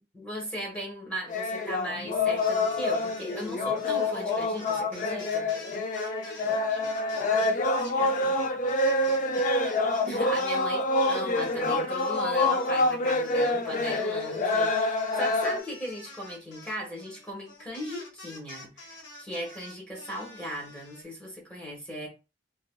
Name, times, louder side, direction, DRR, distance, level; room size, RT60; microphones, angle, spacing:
voice 1, 0.1-5.5 10.1-22.1, equal, 5° left, 1.3 m, -38 dB
sound 1, 1.3-15.6, left 2 dB, 45° left, 0.4 m, -27 dB
sound 2, 2.2-10.7 10.9-21.0, left 2 dB, 90° left, 1.3 m, -47 dB
voice 2, 5.9-9.7, left 2 dB, 65° left, 1.3 m, -47 dB
3.8 x 2.6 x 2.2 m
head